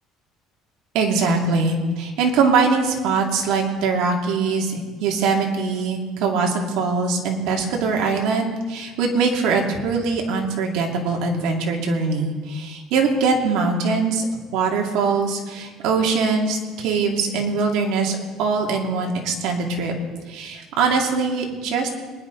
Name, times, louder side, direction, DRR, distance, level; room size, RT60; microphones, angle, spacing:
voice 1, 0.9-14.3 14.5-19.9 20.3-21.9, right 4 dB, 70° right, 1 dB, 2.4 m, -22 dB
22.0 x 11.0 x 3.9 m, 1.4 s
cardioid pair, 155°, 0 cm